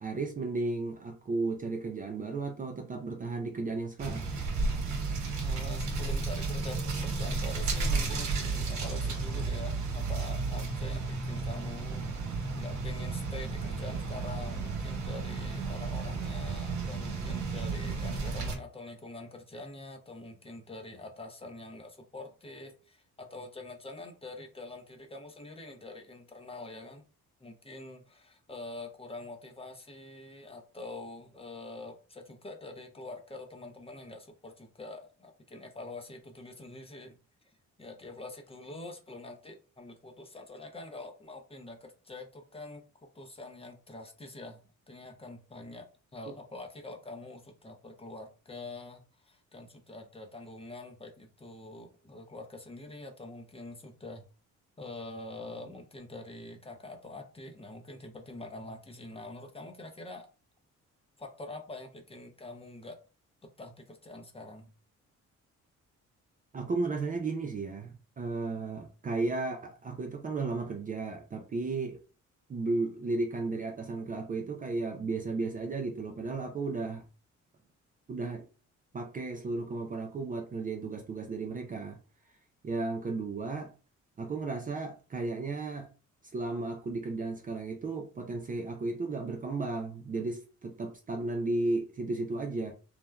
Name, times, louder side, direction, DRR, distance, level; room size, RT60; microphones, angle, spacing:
voice 1, 0.0-4.3 66.5-72.0 72.5-77.0 78.1-78.5 78.9-82.0 82.6-83.7 84.2-85.9 86.3-92.7, right 3 dB, 30° right, 0.4 m, -34 dB
sound 1, 4.0-18.5, right 4 dB, 70° right, 1.0 m, -33 dB
voice 2, 5.4-12.1 12.6-27.1 27.4-37.1 37.4-37.5 37.8-42.8 43.1-44.6 44.9-54.2 54.8-60.3 61.2-63.0 63.6-64.7, left 2 dB, 20° left, 0.6 m, -45 dB
3.2 x 2.1 x 2.2 m
cardioid pair, 90°, 30 cm